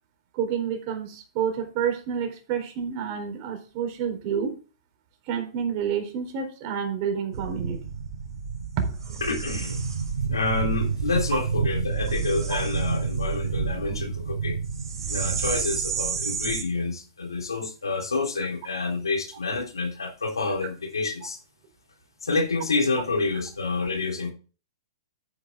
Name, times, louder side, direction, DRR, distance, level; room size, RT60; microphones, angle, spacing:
voice 1, 0.3-4.5 5.3-7.8 8.8-9.2 11.3-11.4 12.5-12.6, right 7 dB, 45° right, 3.9 m, -29 dB
sound 1, 7.3-16.6, right 5 dB, 75° right, 3.9 m, -29 dB
voice 2, 9.2-9.8 10.3-14.6 15.1-21.4 22.2-24.3, left 3 dB, 85° left, 3.7 m, -28 dB
9.9 x 9.4 x 3.8 m
hypercardioid pair, 115°, 2 cm